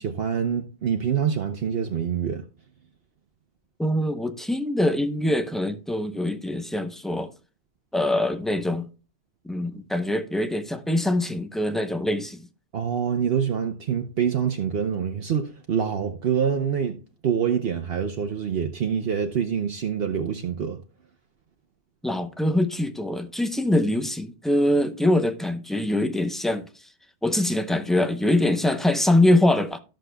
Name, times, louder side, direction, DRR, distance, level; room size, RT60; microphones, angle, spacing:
voice 1, 0.0-2.4 12.7-17.0 17.2-20.8, right 7 dB, 60° right, 1.0 m, -26 dB
voice 2, 3.8-7.3 7.9-8.9 9.5-12.4 22.0-26.7 27.2-29.8, left 1 dB, ahead, 0.5 m, -23 dB
14.0 x 6.4 x 2.2 m
omnidirectional pair, 1.2 m